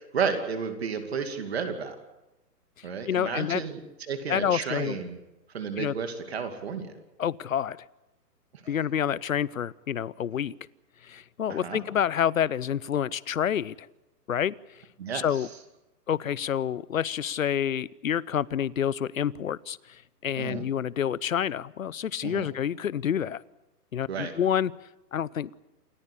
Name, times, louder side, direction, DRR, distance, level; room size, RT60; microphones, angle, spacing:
voice 1, 0.1-2.0 2.8-3.8 4.1-5.2 5.5-6.9 8.6-8.8 11.5-11.8 15.0-15.3 20.4-20.6 22.2-22.5 24.1-24.3, right 6 dB, 40° right, 7 dB, 2.6 m, -32 dB
voice 2, 3.1-3.6 4.3-5.0 5.8-5.9 7.2-7.8 8.7-10.5 11.0-13.9 14.3-14.5 15.1-15.5 16.1-23.4 23.9-24.7 25.1-25.6, left 9 dB, 55° left, 22 dB, 0.7 m, -28 dB
28.0 x 14.5 x 8.5 m, 0.98 s
hypercardioid pair, 175°, 48 cm